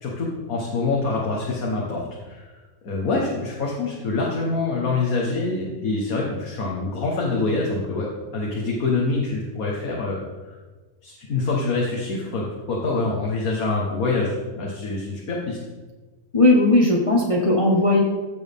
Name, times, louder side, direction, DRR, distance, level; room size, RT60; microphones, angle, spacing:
voice 1, 0.0-10.2 10.5-10.6 11.0-15.6, left 3 dB, 70° left, -3 dB, 1.8 m, -25 dB
voice 2, 16.3-18.0, left 2 dB, 25° left, -3 dB, 1.2 m, -17 dB
15.5 x 6.3 x 3.6 m, 1.3 s
omnidirectional pair, 1.6 m